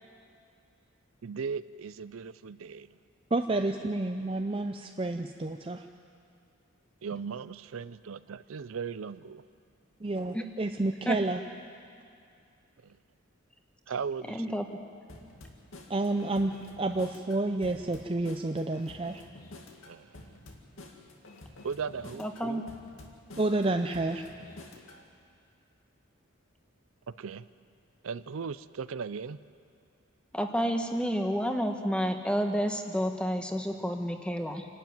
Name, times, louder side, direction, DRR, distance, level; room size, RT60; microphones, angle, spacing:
voice 1, 1.2-2.9 7.0-9.4 13.9-14.6 19.9-20.1 21.6-22.7 27.1-27.4 28.0-29.4, right 6 dB, 75° right, 15 dB, 0.5 m, -37 dB
voice 2, 3.3-5.9 10.0-11.4 15.9-19.2 23.4-24.2, right 2 dB, 25° right, 5 dB, 0.5 m, -30 dB
voice 3, 14.3-14.7 22.2-22.7 30.3-34.7, equal, 5° left, 5 dB, 1.1 m, -30 dB
sound 1, 15.1-25.0, left 2 dB, 75° left, 2.1 m, -49 dB
27.0 x 12.0 x 9.3 m, 2.4 s
head